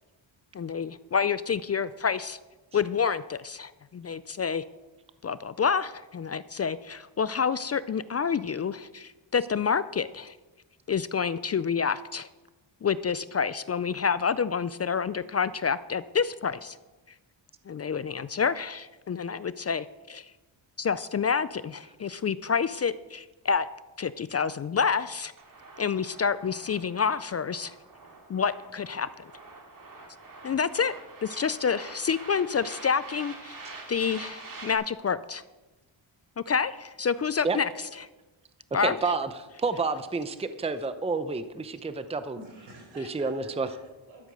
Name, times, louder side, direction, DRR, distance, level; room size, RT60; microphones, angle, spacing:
voice 1, 0.5-2.4 2.7-4.6 5.2-10.4 10.9-12.3 12.8-16.8 17.7-20.3 20.8-23.7 24.0-25.3 25.8-27.7 28.3-29.3 30.4-30.9 31.2-33.6 33.9-35.4 36.5-37.7 38.0-38.1 38.7-39.1, left 6 dB, 35° left, 16 dB, 0.4 m, -28 dB
sound 1, 25.4-34.7, right 3 dB, 45° right, 2.5 m, -46 dB
voice 2, 38.8-39.3 39.6-42.4 43.0-43.7, right 4 dB, 15° right, 11 dB, 0.7 m, -29 dB
voice 3, 42.4-44.3, right 1 dB, 85° right, 1 dB, 4.6 m, -49 dB
13.0 x 8.0 x 6.8 m, 1.1 s
cardioid pair, 105°, 47 cm